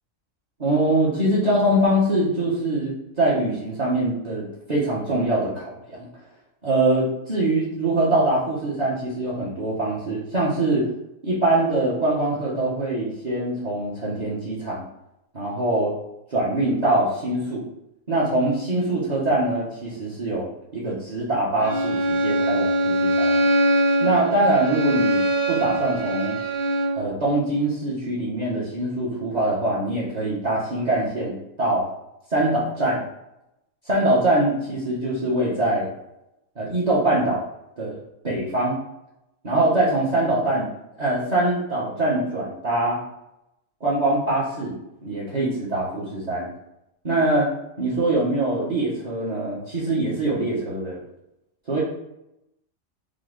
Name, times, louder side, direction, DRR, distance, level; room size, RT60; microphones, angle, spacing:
voice 1, 0.6-6.1 6.6-10.9 11.2-14.8 15.3-15.9 16.3-17.6 18.1-23.4 24.0-26.4 26.9-31.9 32.3-33.0 33.8-35.9 36.6-37.4 37.8-38.0 38.2-38.8 39.4-40.7 41.0-43.0 43.8-44.7 45.0-46.5 47.0-47.5 47.8-51.0 51.7-51.8, right 1 dB, 35° right, -7 dB, 1.1 m, -23 dB
Bowed string instrument, 21.6-27.0, right 1 dB, 80° right, 2.0 m, -22 dB
5.1 x 2.4 x 3.9 m, 0.86 s
omnidirectional pair, 1.4 m